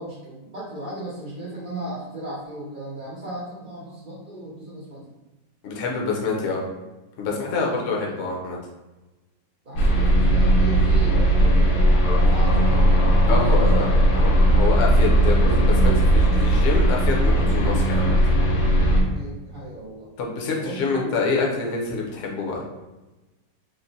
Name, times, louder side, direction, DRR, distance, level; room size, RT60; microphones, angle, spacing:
voice 1, 0.0-5.1 7.2-7.8 9.6-13.0 13.3-14.4 19.0-20.1 20.6-21.3, right 2 dB, 70° right, -7 dB, 0.4 m, -35 dB
voice 2, 5.6-6.6 7.2-8.6 13.3-13.9 14.1-18.2 20.2-22.6, left 4 dB, 60° left, -1 dB, 0.8 m, -26 dB
sound 1, 9.8-19.0, right 1 dB, 80° left, 1.4 m, -18 dB
3.7 x 2.1 x 3.9 m, 1.1 s
omnidirectional pair, 2.0 m